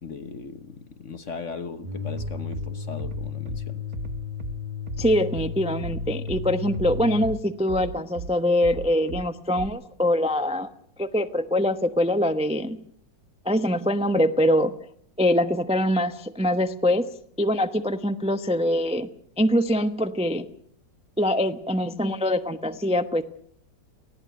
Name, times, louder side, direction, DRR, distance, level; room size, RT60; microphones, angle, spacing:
voice 1, 0.0-3.8, left 5 dB, 45° left, 11 dB, 1.2 m, -38 dB
sound 1, 1.8-7.4, left 6 dB, 30° right, 1.3 m, -34 dB
Bass drum, 2.2-2.7 3.0-3.6 3.9-4.5 4.9-5.5 5.8-6.4 6.7-7.3 7.7-8.3 8.6-9.2 9.5-9.7, right 6 dB, 45° right, 1.2 m, -35 dB
voice 2, 5.0-10.7 11.0-12.8 13.4-14.8 15.2-17.1 17.4-19.1 19.4-20.5 21.2-23.2, left 1 dB, 5° right, 9 dB, 0.6 m, -23 dB
20.0 x 15.5 x 9.2 m, 0.65 s
omnidirectional pair, 2.0 m